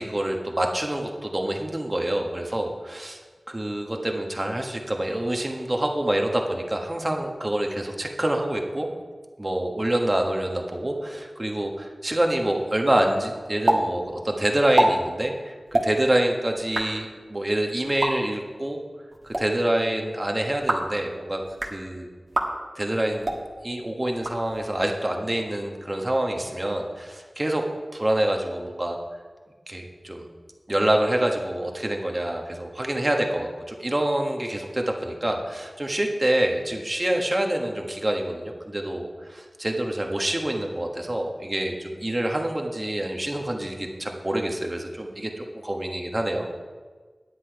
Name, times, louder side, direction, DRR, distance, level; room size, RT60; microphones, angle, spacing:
voice 1, 0.0-3.2 3.5-8.9 9.4-18.8 19.2-22.1 22.8-23.3 23.6-27.6 27.9-29.0 29.7-30.2 30.7-46.5, right 1 dB, 30° right, 2 dB, 1.3 m, -26 dB
sound 1, 13.7-13.8 14.1-14.2 14.6-14.9 15.7-15.9 16.6-16.9 17.8-18.1 19.1-19.4 20.5-20.9 21.4-21.8 22.3-22.5 23.2-23.4 24.1-24.8, right 1 dB, 50° right, 1.4 m, -25 dB
9.9 x 8.5 x 4.8 m, 1.5 s
wide cardioid pair, 55°, 0 cm